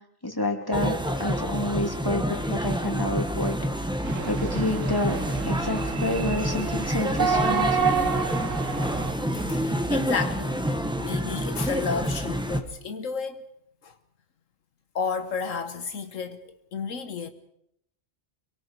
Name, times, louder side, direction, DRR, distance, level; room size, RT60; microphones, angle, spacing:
voice 1, 0.2-3.6 4.3-5.2 5.4-8.0, left 1 dB, 15° left, 2.9 m, -29 dB
sound 1, 0.7-12.6, equal, 5° right, 1.4 m, -28 dB
sound 2, 4.0-9.1, right 6 dB, 75° right, 1.5 m, -29 dB
voice 2, 9.3-13.5 13.8-13.9 14.9-17.3, left 5 dB, 80° left, 1.5 m, -32 dB
26.5 x 23.0 x 4.6 m
omnidirectional pair, 1.3 m